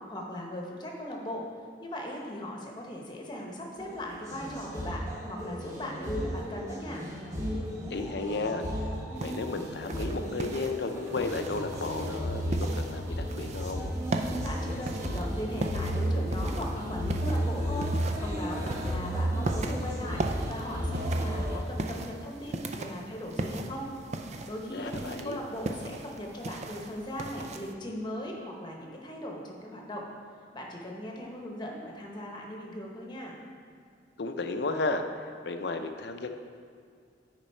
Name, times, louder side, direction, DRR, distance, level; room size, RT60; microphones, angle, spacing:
voice 1, 0.0-1.5 1.8-7.1 14.4-23.9 24.2-30.1 30.5-33.4, left 1 dB, 25° left, -1 dB, 1.0 m, -38 dB
sound 1, 3.8-21.6, equal, 15° right, 1.0 m, -33 dB
voice 2, 7.9-8.7 9.2-14.0 24.7-25.4 34.2-36.3, left 3 dB, 65° left, 7 dB, 0.5 m, -33 dB
sound 2, 9.2-27.7, right 2 dB, 40° right, 0.4 m, -38 dB
8.8 x 5.2 x 4.4 m, 2.2 s
head